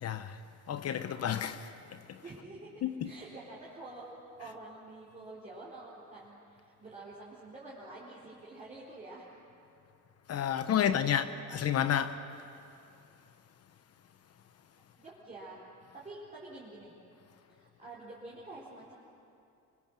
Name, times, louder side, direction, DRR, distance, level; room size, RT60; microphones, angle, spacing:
voice 1, 0.0-0.4 0.7-2.2 2.8-3.1 10.3-12.2, left 9 dB, 55° left, 1.0 m, -31 dB
voice 2, 2.2-4.1 4.4-9.3 10.7-11.7 15.0-15.6 15.9-16.9 17.5-18.9, right 2 dB, 25° right, 4.2 m, -48 dB
25.0 x 24.5 x 7.6 m
cardioid pair, 150°, 30 cm